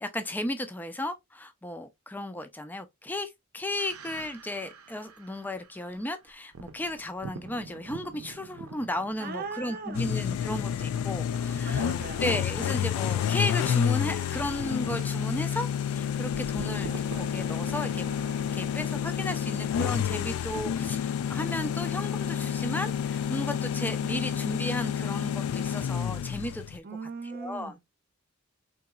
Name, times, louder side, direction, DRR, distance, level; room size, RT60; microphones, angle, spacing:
voice 1, 0.0-11.9 12.2-18.1 18.5-26.8 27.3-27.7, left 1 dB, 10° left, 0.4 m, -34 dB
sound 1, 3.8-19.6, right 4 dB, 90° right, 0.6 m, -47 dB
voice 2, 9.2-10.0 11.6-12.3 26.8-27.9, right 4 dB, 45° right, 0.6 m, -38 dB
sound 2, 9.9-26.8, left 8 dB, 85° left, 0.3 m, -29 dB
3.9 x 2.8 x 2.2 m
head